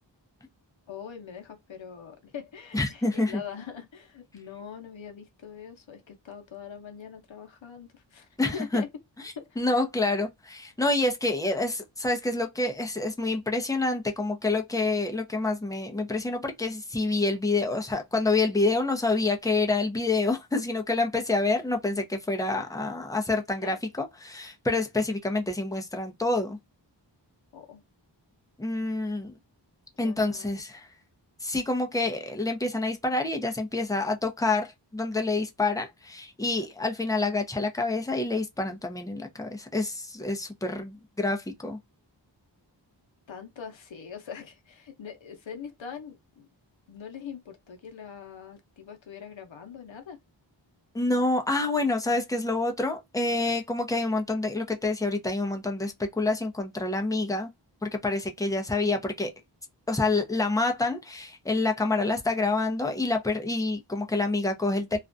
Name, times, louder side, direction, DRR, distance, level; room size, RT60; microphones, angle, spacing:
voice 1, 0.9-8.9 9.4-9.5 23.6-23.7 27.5-27.8 30.0-30.5 43.3-46.5 46.9-50.2, left 7 dB, 90° left, 0.7 m, -42 dB
voice 2, 2.7-3.4 8.4-8.8 9.6-26.6 28.6-29.4 30.0-30.9 31.4-41.8 50.9-57.5 57.8-59.3 59.9-65.0, left 2 dB, 10° left, 0.5 m, -27 dB
2.4 x 2.2 x 2.5 m
wide cardioid pair, 60°, 45 cm